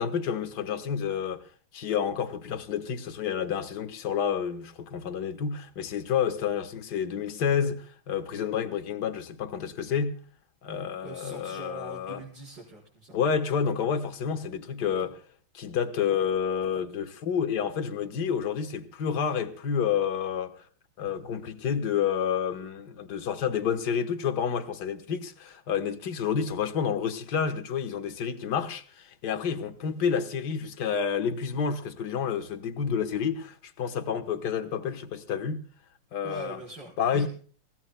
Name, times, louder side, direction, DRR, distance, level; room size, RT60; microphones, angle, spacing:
voice 1, 0.0-1.4 1.7-10.2 10.6-12.2 13.1-15.1 15.5-20.6 21.0-35.6 36.1-36.6 37.0-37.3, left 7 dB, 55° left, 1.8 m, -29 dB
voice 2, 11.0-13.2 15.0-15.1 36.2-37.3, right 1 dB, 50° right, 5.2 m, -42 dB
28.0 x 16.5 x 2.2 m
omnidirectional pair, 2.4 m